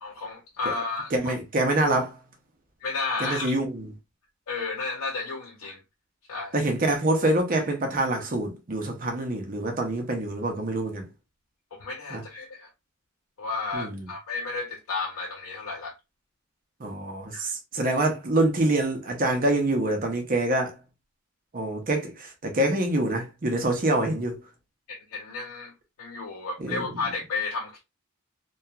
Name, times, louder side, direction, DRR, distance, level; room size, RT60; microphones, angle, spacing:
voice 1, 0.0-1.4 2.8-3.5 4.5-5.8 6.3-6.5 11.7-12.7 13.4-15.9 17.3-17.5 24.9-25.7 26.0-27.8, left 3 dB, 90° left, 0.6 m, -32 dB
voice 2, 1.1-2.2 3.2-3.9 6.5-11.1 12.1-12.2 13.7-14.1 16.8-20.8 21.5-24.4 26.6-26.9, right 1 dB, 40° right, 0.6 m, -26 dB
2.8 x 2.3 x 2.3 m
head